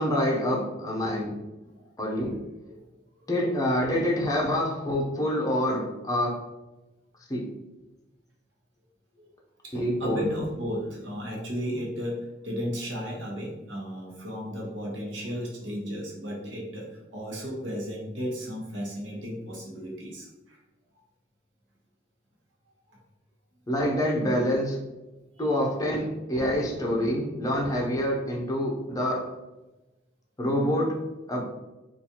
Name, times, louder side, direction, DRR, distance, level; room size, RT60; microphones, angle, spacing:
voice 1, 0.0-1.4 2.0-2.4 3.3-6.4 7.3-7.4 9.7-10.3 23.7-24.8 25.4-29.3 30.4-31.5, equal, 20° left, -2 dB, 0.5 m, -26 dB
voice 2, 9.6-20.6 25.4-25.5, equal, 80° right, -2 dB, 1.1 m, -34 dB
4.0 x 2.4 x 2.8 m, 1.1 s
head